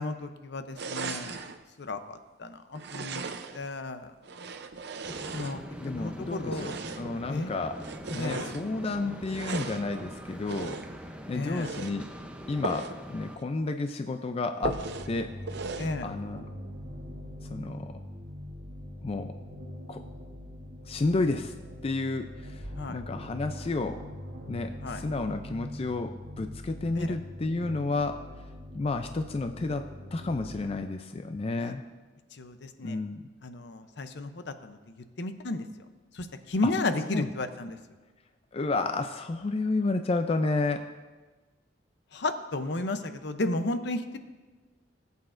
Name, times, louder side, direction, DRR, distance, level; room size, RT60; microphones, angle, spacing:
voice 1, 0.0-1.4 1.8-3.2 3.5-4.1 5.3-5.6 6.0-6.7 7.3-7.5 8.2-8.5 11.3-11.7 15.8-16.1 22.8-23.0 24.8-25.0 26.9-27.1 31.6-31.7 32.3-33.0 33.4-35.6 36.1-37.8 42.1-44.2, left 2 dB, 65° left, 9 dB, 0.7 m, -33 dB
sound 1, 0.8-1.6 2.7-3.7 4.2-5.9 6.5-7.2 7.8-8.6 9.3-9.9 10.5-11.0 11.5-12.0 12.6-13.0 13.4-13.5 13.8-13.9 14.6-15.1 15.5-16.0, right 4 dB, 65° right, 0.6 m, -37 dB
sound 2, 5.0-13.4, equal, 5° right, 0.7 m, -43 dB
voice 2, 5.8-7.8 8.1-10.8 11.3-12.1 12.5-15.3 16.0-16.5 17.5-17.9 19.0-19.4 19.9-20.0 20.9-21.5 21.8-24.0 24.5-28.2 28.7-31.8 32.8-33.2 36.6-36.7 37.1-37.3 38.5-40.9, left 3 dB, 35° left, 7 dB, 0.4 m, -31 dB
sound 3, 14.6-30.6, equal, 85° right, 1.3 m, -42 dB
18.5 x 8.3 x 2.6 m, 1.3 s
head